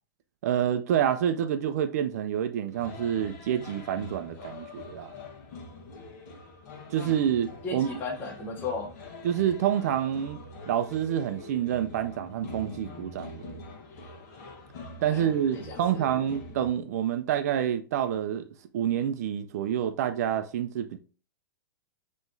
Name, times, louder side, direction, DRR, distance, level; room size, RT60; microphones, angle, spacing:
voice 1, 0.4-5.1 6.9-7.9 9.2-10.4 10.7-13.6 15.0-18.5 18.7-21.0, right 9 dB, 50° right, 0.4 m, -28 dB
sound 1, 2.7-16.7, left 3 dB, 50° left, 1.1 m, -44 dB
voice 2, 7.6-8.9 15.1-16.1, left 3 dB, 20° left, 0.8 m, -36 dB
5.6 x 3.0 x 2.6 m
supercardioid pair, 165°, 11 cm